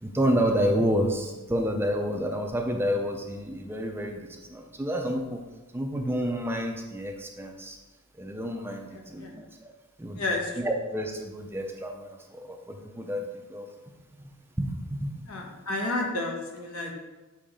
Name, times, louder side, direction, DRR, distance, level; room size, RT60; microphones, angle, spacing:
voice 1, 0.0-5.4 5.7-7.8 8.2-9.7 10.0-13.7 14.6-15.1, equal, 10° right, 3 dB, 0.5 m, -29 dB
voice 2, 8.9-9.3 10.1-10.5 15.3-16.9, left 2 dB, 75° left, 1 dB, 1.2 m, -31 dB
6.9 x 3.2 x 5.0 m, 1.2 s
head